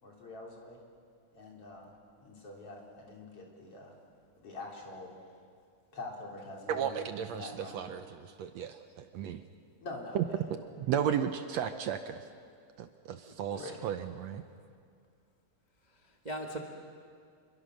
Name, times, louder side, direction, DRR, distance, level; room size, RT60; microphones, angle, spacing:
voice 1, 0.0-0.8 1.3-1.9 2.2-3.9 4.4-5.2 5.9-7.9 9.8-10.4 13.6-13.8, left 2 dB, 50° left, -2 dB, 4.4 m, -45 dB
voice 2, 6.7-9.4 10.2-12.2 12.8-14.4, right 9 dB, 70° right, 8 dB, 1.8 m, -34 dB
voice 3, 13.3-13.6 15.9-16.6, right 1 dB, 25° right, 1 dB, 0.9 m, -41 dB
27.0 x 23.0 x 6.5 m, 2.2 s
omnidirectional pair, 3.5 m